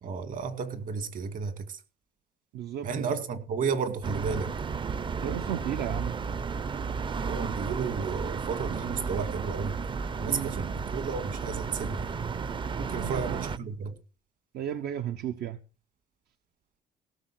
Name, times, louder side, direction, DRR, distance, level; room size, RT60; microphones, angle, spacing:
voice 1, 0.0-1.8 2.8-4.5 7.2-9.8 10.2-12.2 12.8-13.9, right 5 dB, 50° right, 2.1 m, -32 dB
voice 2, 2.5-3.1 5.2-6.2 10.3-10.6 12.9-13.5 14.5-15.6, right 10 dB, 75° right, 1.0 m, -34 dB
sound 1, 4.0-13.6, right 5 dB, 30° right, 0.6 m, -33 dB
17.5 x 6.8 x 6.2 m
cardioid pair, 110°, 17 cm